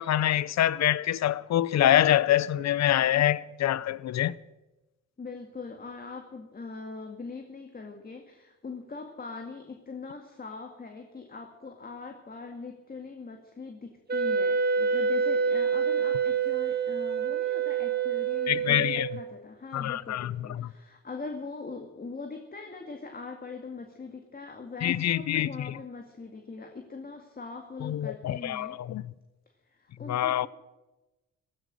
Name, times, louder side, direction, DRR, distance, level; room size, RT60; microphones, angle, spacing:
voice 1, 0.0-4.3 18.5-19.1 19.7-20.7 24.8-25.8 27.8-29.0 30.1-30.5, left 12 dB, 65° left, 0.7 m, -25 dB
voice 2, 5.2-28.8 29.7-30.5, left 4 dB, 30° left, 2.1 m, -42 dB
Wind instrument woodwind instrument, 14.1-19.3, right 6 dB, 30° right, 2.1 m, -27 dB
15.5 x 14.5 x 6.4 m
cardioid pair, 90°, 30 cm